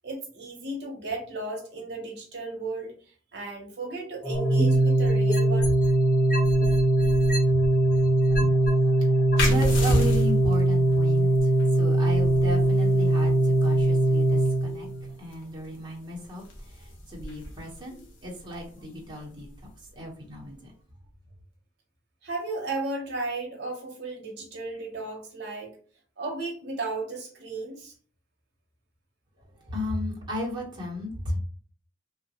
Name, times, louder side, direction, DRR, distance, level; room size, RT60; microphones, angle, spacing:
voice 1, 0.0-5.7 13.4-13.5 22.2-25.8 26.2-27.9, right 2 dB, 55° right, 0 dB, 0.8 m, -35 dB
Organ, 4.2-15.1, right 2 dB, 15° left, 0.4 m, -21 dB
sound 1, 4.3-5.9 6.3-8.7 9.3-9.4, left 1 dB, 45° left, 0.9 m, -32 dB
voice 2, 8.0-20.7 29.6-31.4, left 1 dB, 25° right, -4 dB, 0.9 m, -35 dB
sound 2, 9.4-20.6, left 1 dB, 75° left, 0.8 m, -35 dB
2.9 x 2.2 x 2.8 m, 0.43 s
head